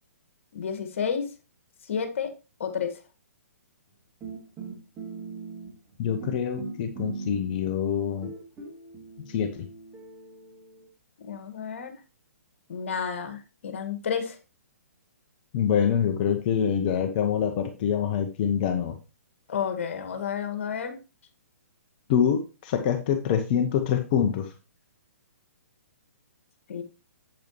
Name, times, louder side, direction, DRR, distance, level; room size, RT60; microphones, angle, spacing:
voice 1, 0.5-1.3 1.8-2.3 2.6-3.0 9.2-9.3 11.2-11.9 12.7-14.4 19.5-21.0 26.7-26.8, left 7 dB, 55° left, 7 dB, 1.9 m, -31 dB
sound 1, 4.2-5.9 6.2-7.8 8.2-10.9, right 4 dB, 20° right, 2.9 m, -40 dB
voice 2, 6.0-8.3 9.3-9.5 15.5-18.9 22.1-24.5, left 8 dB, 35° left, 6 dB, 0.9 m, -25 dB
8.5 x 8.1 x 3.1 m, 0.30 s
figure-of-eight pair, 125°, 8 cm